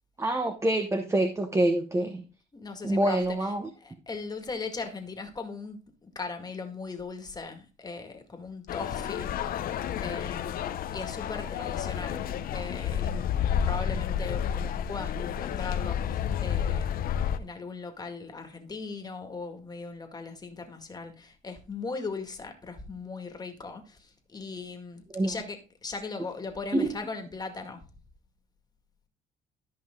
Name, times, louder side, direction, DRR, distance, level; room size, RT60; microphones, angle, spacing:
voice 1, 0.2-2.2 2.8-3.7 25.1-25.3 26.7-26.9, right 1 dB, 15° right, 1.1 m, -26 dB
voice 2, 2.5-3.5 3.8-9.7 10.0-16.9 17.3-27.8, left 4 dB, 25° left, 2.0 m, -39 dB
sound 1, 8.7-17.4, left 9 dB, 60° left, 0.8 m, -30 dB
13.5 x 5.5 x 3.8 m
cardioid pair, 110°, 17 cm